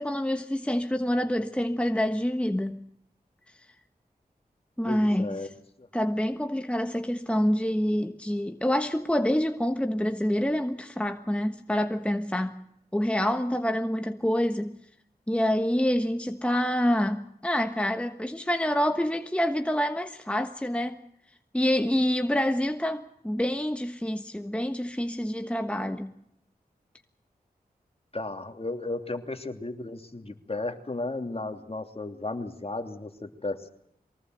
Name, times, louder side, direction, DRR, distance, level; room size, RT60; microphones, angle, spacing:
voice 1, 0.0-2.8 4.8-5.3 5.9-12.5 12.9-14.8 15.3-21.0 21.5-26.1, equal, 5° left, 1.3 m, -27 dB
voice 2, 4.8-5.5 5.8-5.9 28.1-33.7, left 2 dB, 35° left, 2.9 m, -34 dB
23.5 x 18.5 x 7.9 m
cardioid pair, 45°, 16 cm